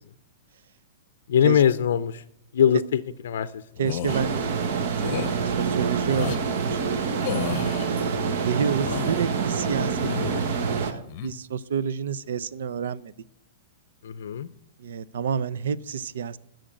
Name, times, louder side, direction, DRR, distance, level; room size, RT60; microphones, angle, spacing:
voice 1, 1.3-2.2 2.5-3.0 3.3-3.5 14.0-14.5, left 9 dB, 75° left, 13 dB, 0.5 m, -21 dB
sound 1, 3.8-4.2 5.0-5.4 6.1-6.4 7.2-7.9 8.6-9.3 9.9-10.6 10.9-11.3, left 10 dB, 35° left, 0.8 m, -33 dB
voice 2, 3.8-7.0 7.8-10.4 10.7-13.1 14.8-16.4, right 7 dB, 75° right, 17 dB, 0.5 m, -30 dB
sound 2, 4.1-10.9, right 5 dB, 50° right, 1.2 m, -26 dB
10.0 x 6.5 x 8.9 m, 0.76 s
hypercardioid pair, 165°, 0 cm